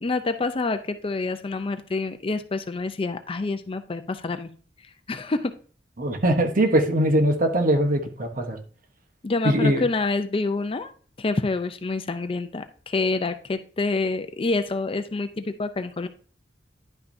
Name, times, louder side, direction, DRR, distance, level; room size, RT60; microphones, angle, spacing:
voice 1, 0.0-4.5 5.1-5.5 9.2-10.9 11.2-16.1, left 3 dB, 30° left, 9 dB, 0.5 m, -27 dB
voice 2, 6.0-8.6 9.4-9.8, right 1 dB, 50° right, 5 dB, 1.0 m, -21 dB
10.5 x 5.6 x 2.6 m, 0.42 s
head